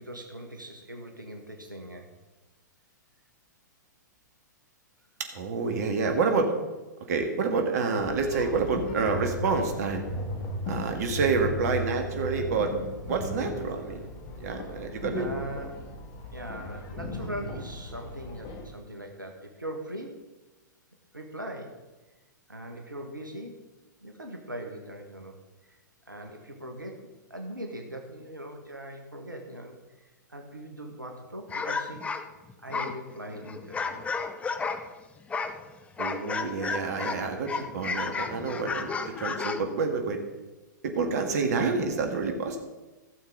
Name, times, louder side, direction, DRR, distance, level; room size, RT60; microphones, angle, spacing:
voice 1, 0.0-2.1 15.1-15.8 16.3-20.3 21.1-21.8 22.5-23.6 24.0-25.3 25.6-25.8 26.0-32.1 32.6-34.1, right 1 dB, 90° right, 3 dB, 1.5 m, -40 dB
voice 2, 5.3-6.5 7.1-10.0 10.7-12.7 13.1-14.0 14.3-15.3 36.0-40.2 40.8-42.6, right 4 dB, 55° right, 5 dB, 1.8 m, -28 dB
sound 1, 8.0-18.7, left 1 dB, 40° left, 1.9 m, -36 dB
sound 2, 31.5-34.9 35.3-37.2 37.5-39.7, left 5 dB, 10° left, 0.7 m, -32 dB
16.0 x 7.3 x 3.9 m, 1.1 s
figure-of-eight pair, 110°, 10 cm